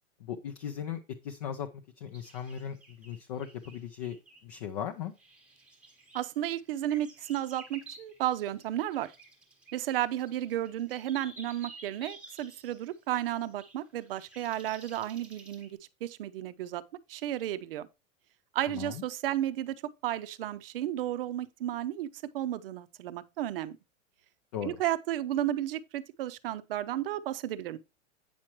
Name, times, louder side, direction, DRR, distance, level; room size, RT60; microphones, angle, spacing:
voice 1, 0.2-1.7 2.0-4.2 4.4-5.1 18.7-19.0 24.5-24.8, left 8 dB, 30° left, 0.5 m, -38 dB
sound 1, 2.1-4.5 5.2-15.7, right 3 dB, 5° right, 1.0 m, -53 dB
voice 2, 6.1-9.1 9.7-16.8 17.1-17.9 18.5-19.8 20.0-23.8 24.6-27.8, right 12 dB, 45° right, 0.7 m, -33 dB
8.7 x 5.9 x 3.0 m
supercardioid pair, 175°, 39 cm